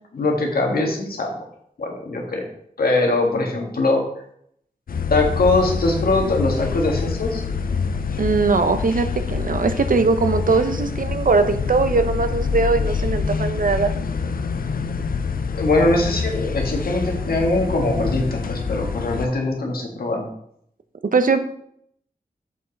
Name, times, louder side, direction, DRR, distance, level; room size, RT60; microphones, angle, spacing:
voice 1, 0.1-1.3 1.8-2.5 2.8-4.0 5.1-7.4 15.5-20.3, left 2 dB, 90° left, 1 dB, 1.6 m, -21 dB
sound 1, 4.9-19.3, left 5 dB, 75° left, 0.6 m, -26 dB
voice 2, 8.2-13.9 21.0-21.4, right 4 dB, 65° right, 9 dB, 0.8 m, -20 dB
7.2 x 5.5 x 4.1 m, 0.70 s
cardioid pair, 50°, 15 cm